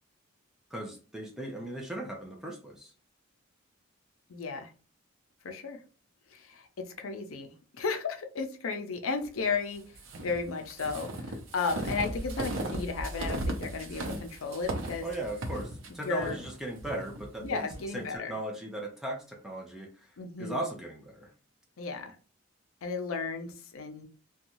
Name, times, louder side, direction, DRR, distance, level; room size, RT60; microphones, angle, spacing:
voice 1, 0.7-2.9 15.0-17.7 17.9-21.3, right 1 dB, ahead, 0 dB, 0.5 m, -38 dB
voice 2, 4.3-4.7 5.4-5.8 6.3-9.8 10.2-15.0 16.0-16.4 17.4-18.3 20.2-20.6 21.8-22.2 22.8-24.1, left 4 dB, 90° left, 6 dB, 0.5 m, -34 dB
sound 1, 9.9-17.8, right 1 dB, 75° right, 0.6 m, -36 dB
2.6 x 2.2 x 2.9 m, 0.37 s
head